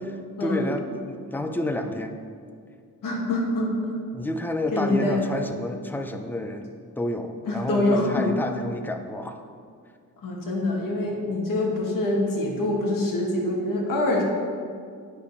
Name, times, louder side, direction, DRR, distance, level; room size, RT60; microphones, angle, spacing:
voice 1, 0.4-2.2 4.1-9.4, left 1 dB, 5° left, 6 dB, 0.4 m, -30 dB
voice 2, 3.0-4.0 4.7-5.3 7.5-8.5 10.2-14.2, left 2 dB, 70° left, -2 dB, 1.7 m, -25 dB
8.8 x 5.0 x 5.3 m, 2.2 s
wide cardioid pair, 155°, 34 cm